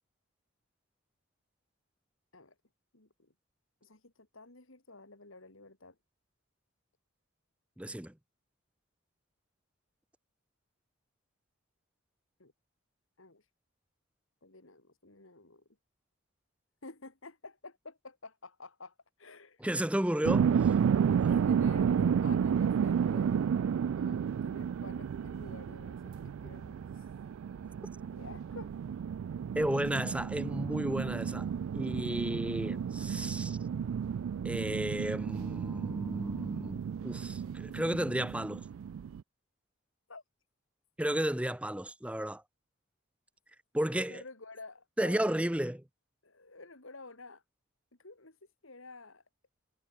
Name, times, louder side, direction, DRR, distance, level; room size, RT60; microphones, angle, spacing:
voice 1, 2.9-3.3 3.8-6.0 12.4-12.5 13.2-13.5 14.4-15.6 16.8-19.7 21.5-23.3 24.0-27.1 28.2-28.7 40.1-40.2 44.1-45.5 46.2-47.4 48.0-48.4 48.6-49.2, left 3 dB, 65° left, 2.6 m, -51 dB
voice 2, 7.8-8.1 19.6-20.7 21.2-21.4 29.6-31.5 31.7-33.6 34.4-38.6 41.0-42.4 43.7-44.2 45.0-45.8, right 1 dB, 5° right, 0.6 m, -33 dB
sound 1, 20.2-39.2, right 7 dB, 70° right, 0.3 m, -32 dB
head